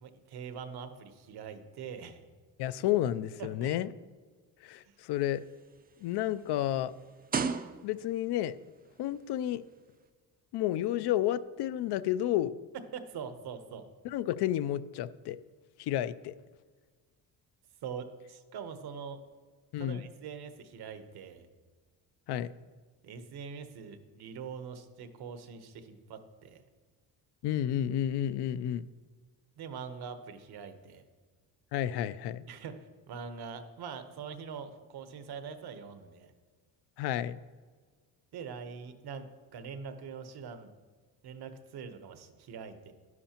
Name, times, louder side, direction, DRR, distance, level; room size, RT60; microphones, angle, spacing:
voice 1, 0.0-2.2 3.4-3.7 4.9-5.0 12.7-13.9 17.8-19.2 19.8-21.5 23.0-26.6 29.6-31.0 32.5-36.3 38.3-40.7 41.2-42.9, right 6 dB, 75° right, 9 dB, 1.0 m, -43 dB
voice 2, 2.6-3.9 4.6-5.4 6.0-6.9 7.8-8.6 9.0-9.6 10.5-12.6 14.0-15.4 15.8-16.3 19.7-20.1 22.3-22.5 27.4-28.9 31.7-32.4 37.0-37.4, left 12 dB, 80° left, 15 dB, 0.5 m, -31 dB
sound 1, 5.1-8.3 9.1-9.3, right 5 dB, 25° right, 0.4 m, -36 dB
11.0 x 11.0 x 2.9 m, 1.5 s
cardioid pair, 115°, 39 cm